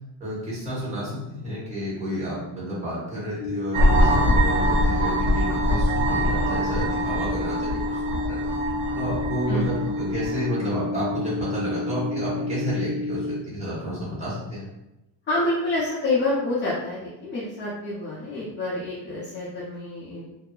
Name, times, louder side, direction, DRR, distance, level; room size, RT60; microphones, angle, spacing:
voice 1, 0.2-8.4 9.0-14.6, equal, 15° right, -8 dB, 0.9 m, -30 dB
sound 1, 3.4-13.4, left 3 dB, 85° left, 0.5 m, -30 dB
sound 2, 3.7-10.4, equal, 85° right, 1.2 m, -23 dB
voice 2, 15.3-20.2, left 2 dB, 25° left, -8 dB, 0.4 m, -27 dB
2.7 x 2.3 x 2.2 m, 0.93 s
cardioid pair, 170°, 46 cm